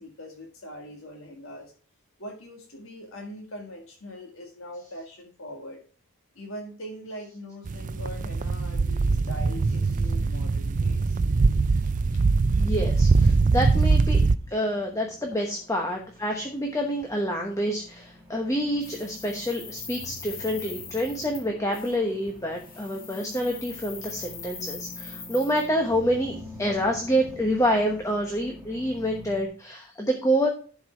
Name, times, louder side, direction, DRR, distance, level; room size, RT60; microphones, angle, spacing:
voice 1, 0.0-1.7 2.2-5.8 6.4-11.2 15.3-15.4 16.3-16.4, equal, 60° left, 1 dB, 1.8 m, -42 dB
sound 1, 7.7-14.4, right 4 dB, 35° right, 0.4 m, -22 dB
voice 2, 12.6-14.2 14.5-30.5, equal, 15° left, 1 dB, 1.0 m, -27 dB
sound 2, 13.9-29.5, left 1 dB, 10° right, 1.4 m, -46 dB
sound 3, 18.8-21.5 21.7-22.0 22.5-25.7, left 6 dB, 40° left, 2.2 m, -41 dB
11.0 x 4.8 x 4.5 m, 0.40 s
head